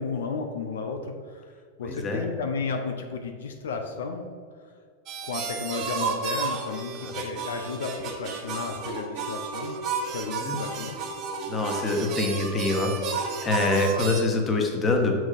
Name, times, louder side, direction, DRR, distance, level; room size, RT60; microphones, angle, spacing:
voice 1, 0.0-1.5 1.8-4.2 5.2-9.7 10.1-11.0, left 4 dB, 80° left, 5 dB, 0.8 m, -33 dB
voice 2, 1.8-2.3 7.0-7.1 10.4-10.6 11.5-15.3, left 2 dB, 25° left, 2 dB, 1.5 m, -25 dB
Harmonica Jammin, 5.1-14.2, right 5 dB, 45° right, 1.4 m, -32 dB
6.3 x 6.3 x 5.3 m, 2.1 s
hypercardioid pair, 105°, 0 cm